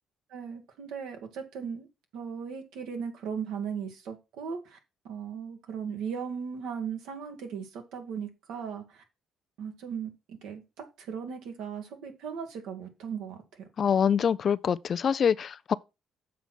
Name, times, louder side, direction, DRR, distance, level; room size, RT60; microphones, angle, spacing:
voice 1, 0.3-1.9 2.1-4.8 5.0-9.0 9.6-10.6 11.0-13.4, right 7 dB, 80° right, 1.9 m, -37 dB
voice 2, 13.8-15.7, left 7 dB, 50° left, 0.4 m, -25 dB
7.2 x 4.4 x 6.0 m
supercardioid pair, 70°, 0 cm